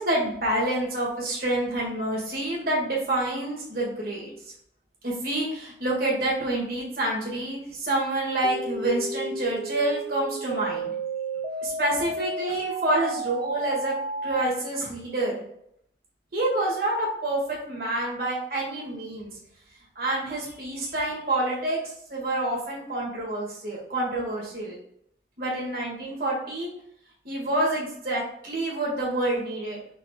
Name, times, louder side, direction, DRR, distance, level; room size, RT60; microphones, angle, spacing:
voice 1, 0.0-4.3 5.0-10.9 11.6-13.9 14.2-15.4 16.3-17.4 17.7-19.3 19.9-21.8 22.1-24.7 25.4-26.7 27.2-29.8, right 1 dB, 55° right, -3 dB, 1.6 m, -27 dB
sound 1, 8.4-14.4, right 2 dB, 35° right, 0.4 m, -32 dB
5.2 x 3.9 x 2.2 m, 0.72 s
head